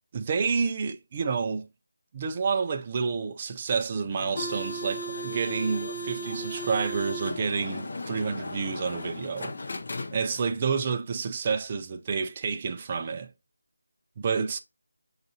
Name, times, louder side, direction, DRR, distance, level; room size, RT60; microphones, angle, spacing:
voice 1, 0.1-1.7 2.1-9.5 10.1-13.3 14.2-14.6, right 5 dB, 25° right, 0.3 m, -29 dB
sound 1, 4.1-10.6, equal, 45° left, 0.5 m, -36 dB
6.4 x 2.4 x 2.7 m
figure-of-eight pair, 175°, 0 cm